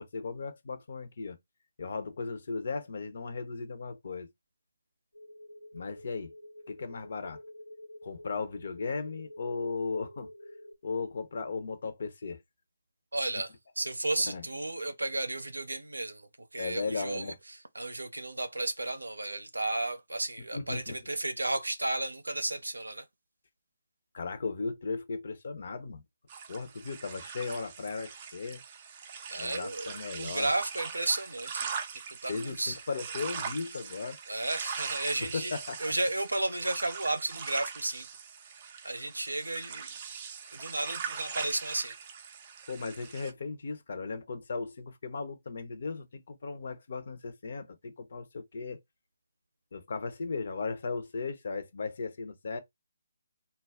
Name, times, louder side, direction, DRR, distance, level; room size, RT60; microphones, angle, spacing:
voice 1, 0.0-1.4 1.8-4.3 5.7-6.3 6.7-7.4 8.0-10.3 10.8-12.4 14.2-14.5 16.6-17.4 20.5-21.0 24.1-26.0 26.5-28.6 29.3-30.5 32.3-34.2 35.2-35.9 42.7-48.8 49.7-52.6, left 4 dB, 55° left, 0.6 m, -36 dB
sound 1, 5.1-10.7, left 1 dB, 85° left, 1.0 m, -49 dB
voice 2, 13.1-13.5 13.8-17.3 17.7-23.0 29.3-31.7 32.2-32.8 34.3-35.5 35.8-38.1 38.8-39.9 40.5-41.9, right 2 dB, 80° right, 0.6 m, -33 dB
sound 2, 26.3-43.3, right 6 dB, 30° right, 0.4 m, -41 dB
2.3 x 2.0 x 3.4 m
figure-of-eight pair, 145°, 0 cm